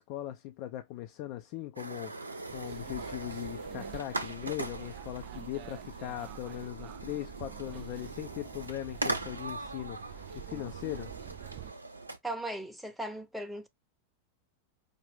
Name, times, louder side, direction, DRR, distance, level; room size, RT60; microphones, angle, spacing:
voice 1, 0.0-11.1, left 15 dB, 45° left, 0.5 m, -40 dB
sound 1, 1.8-12.2, right 2 dB, 80° right, 0.7 m, -40 dB
sound 2, 2.5-11.7, right 15 dB, 45° right, 0.3 m, -47 dB
voice 2, 12.2-13.7, right 1 dB, ahead, 0.8 m, -37 dB
5.2 x 2.6 x 3.3 m
figure-of-eight pair, 90°, 0 cm